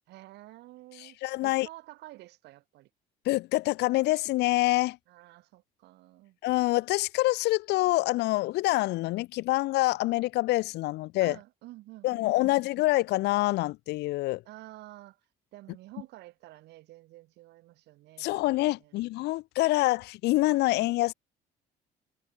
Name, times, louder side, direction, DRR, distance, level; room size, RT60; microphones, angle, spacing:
voice 1, 0.1-2.9 5.1-6.4 11.2-12.5 14.4-15.2 15.5-19.0, right 17 dB, 80° right, 4.6 m, -50 dB
voice 2, 1.0-1.7 3.2-5.0 6.4-11.3 12.0-14.4 18.2-21.1, left 19 dB, 85° left, 1.2 m, -26 dB
cardioid pair, 110°, 17 cm